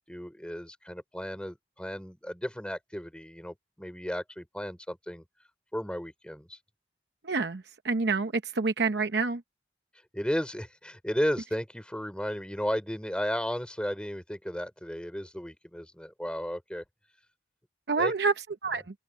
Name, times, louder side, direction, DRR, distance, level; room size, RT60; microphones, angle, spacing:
voice 1, 0.1-5.2 5.7-6.6 10.1-16.8 18.0-18.1, equal, 5° left, 5.1 m, -34 dB
voice 2, 7.2-9.4 17.9-18.3 18.6-18.8, right 4 dB, 65° right, 0.8 m, -27 dB
head